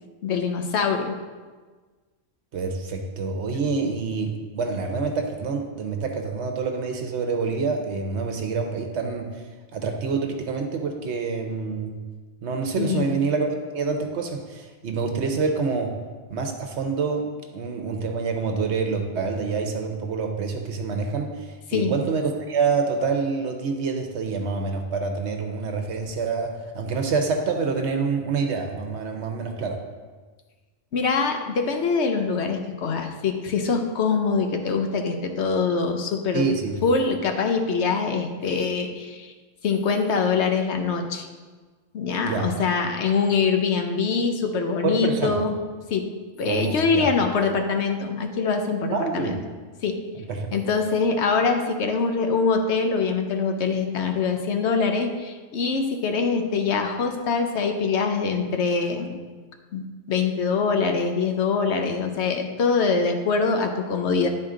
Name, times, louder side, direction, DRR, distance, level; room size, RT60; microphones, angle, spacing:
voice 1, 0.2-1.1 12.8-13.1 21.7-21.9 30.9-36.5 36.8-39.3 39.6-41.3 41.9-45.6 45.9-46.1 46.4-49.4 49.8-50.0 50.5-59.2 59.7-64.3, left 5 dB, 65° left, 4 dB, 1.0 m, -24 dB
voice 2, 2.5-9.4 9.7-12.0 12.4-15.9 16.3-17.3 17.5-29.8 36.3-36.8 42.3-42.5 44.8-45.4 46.4-47.1 48.9-49.4 50.2-50.5, right 4 dB, 65° right, 3 dB, 1.1 m, -27 dB
10.5 x 4.3 x 3.7 m, 1.4 s
omnidirectional pair, 1.3 m